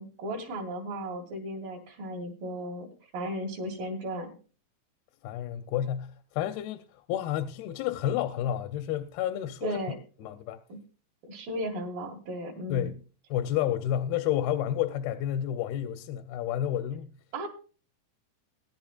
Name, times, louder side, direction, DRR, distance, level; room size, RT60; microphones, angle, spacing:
voice 1, 0.0-2.9 3.1-4.3 9.6-10.0 10.7-10.8 11.3-12.9 17.3-17.5, right 1 dB, 65° right, 3.8 m, -35 dB
voice 2, 5.2-9.8 10.2-10.6 12.7-13.0 13.3-17.1, left 11 dB, 85° left, 2.6 m, -30 dB
21.0 x 11.0 x 2.4 m
omnidirectional pair, 4.4 m